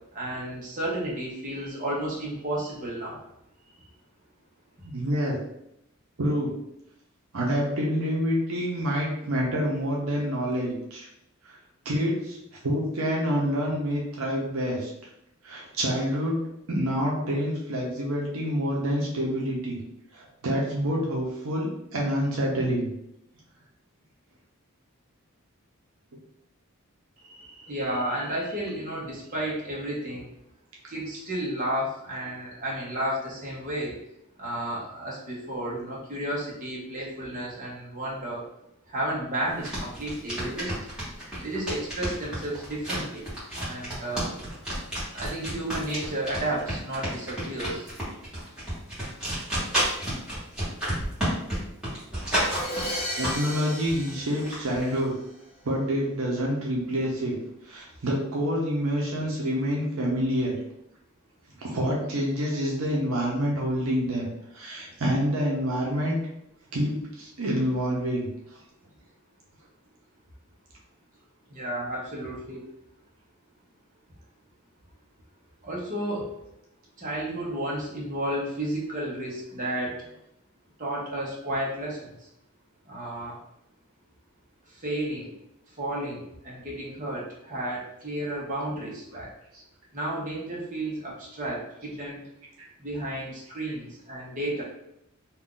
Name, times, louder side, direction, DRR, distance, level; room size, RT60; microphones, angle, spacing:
voice 1, 0.1-3.2 27.2-30.3 30.9-33.9 34.4-38.4 38.9-40.7 41.4-44.3 45.1-47.9 71.5-72.6 75.6-76.3 77.0-79.9 80.8-82.2 82.9-83.4 84.8-85.3 85.8-89.3 89.9-92.2 92.8-94.6, right 1 dB, 40° right, -5 dB, 0.9 m, -32 dB
voice 2, 4.8-5.4 6.2-6.5 7.3-11.1 11.4-11.6 11.8-12.4 12.6-14.9 15.4-16.4 16.7-19.8 20.1-22.9 53.2-55.1 55.6-57.4 57.6-60.5 61.6-64.3 64.5-66.2 66.7-68.3 89.5-89.6 92.0-92.1 92.6-92.7, equal, 75° right, -3 dB, 0.8 m, -27 dB
sound 1, 39.5-53.6 53.9-55.0, right 1 dB, 5° right, 1.3 m, -31 dB
Crash cymbal, 52.3-55.3, equal, 25° left, 0.8 m, -35 dB
2.6 x 2.3 x 3.7 m, 0.80 s
head